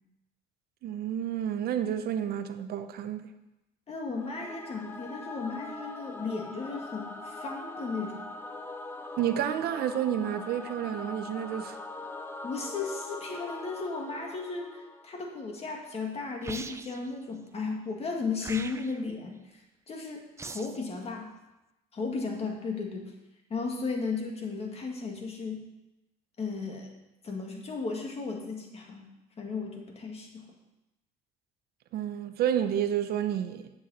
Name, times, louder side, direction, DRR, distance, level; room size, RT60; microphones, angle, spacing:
voice 1, 0.8-3.3 9.2-11.8 31.9-33.7, right 10 dB, 65° right, 0.7 m, -30 dB
voice 2, 3.9-8.3 12.4-21.3 21.9-23.1 23.5-25.6 26.4-26.9 27.2-29.1 29.4-30.5, left 4 dB, 35° left, 2.0 m, -35 dB
Singing / Musical instrument, 4.1-15.4, left 2 dB, 10° left, 0.8 m, -42 dB
sound 1, 16.4-17.1 18.4-19.1 20.4-20.9, right 4 dB, 15° right, 0.5 m, -41 dB
10.0 x 7.5 x 4.2 m
cardioid pair, 110°, 17 cm